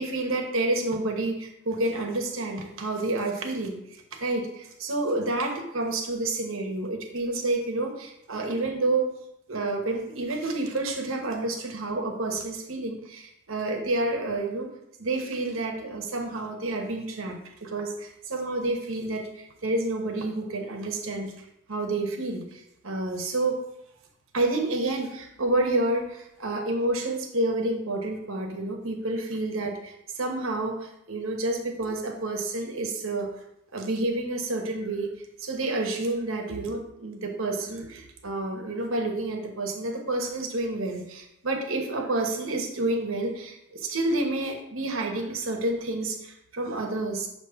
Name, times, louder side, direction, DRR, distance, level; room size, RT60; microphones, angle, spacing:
voice 1, 0.0-9.1 9.5-14.7 15.0-23.6 24.3-33.4 33.7-47.3, right 2 dB, 65° right, 3 dB, 1.0 m, -29 dB
7.0 x 2.9 x 5.6 m, 0.82 s
head